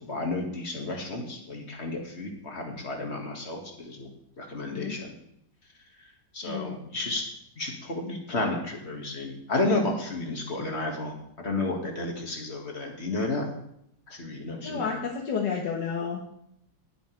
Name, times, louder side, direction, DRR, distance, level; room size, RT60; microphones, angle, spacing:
voice 1, 0.0-4.1 4.4-5.1 6.0-7.3 7.6-13.4 14.1-14.9, left 2 dB, 35° left, 1 dB, 2.2 m, -32 dB
voice 2, 6.5-6.8 14.6-16.2, left 6 dB, 70° left, 0 dB, 1.9 m, -31 dB
19.0 x 7.8 x 3.4 m, 0.74 s
omnidirectional pair, 2.0 m